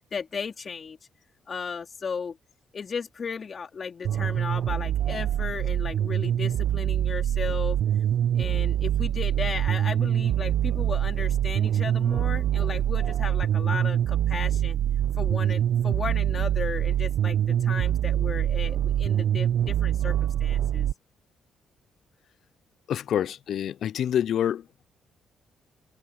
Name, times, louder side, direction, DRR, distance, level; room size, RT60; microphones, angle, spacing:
voice 1, 0.1-1.0 1.5-2.4 2.7-7.8 8.3-14.8 15.2-20.9, left 5 dB, 45° left, 4.0 m, -35 dB
sound 1, 4.0-20.9, right 11 dB, 70° right, 0.6 m, -25 dB
voice 2, 22.9-24.9, left 10 dB, 65° left, 0.4 m, -27 dB
cardioid pair, 90°, 0 cm